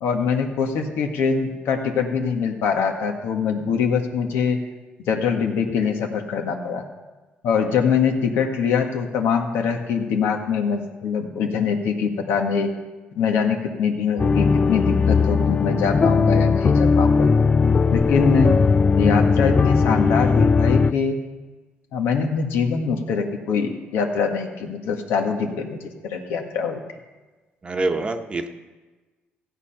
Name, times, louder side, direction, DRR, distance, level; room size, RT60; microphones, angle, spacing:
voice 1, 0.0-4.6 5.1-6.8 7.4-12.7 13.1-17.3 17.9-18.6 19.0-21.2 21.9-26.8, left 6 dB, 80° left, 3 dB, 1.7 m, -23 dB
sound 1, 14.2-20.9, left 4 dB, 30° left, 0.3 m, -18 dB
voice 2, 27.6-28.5, right 2 dB, 25° right, 6 dB, 1.0 m, -25 dB
16.0 x 8.4 x 5.8 m, 1.2 s
cardioid pair, 105°, 4 cm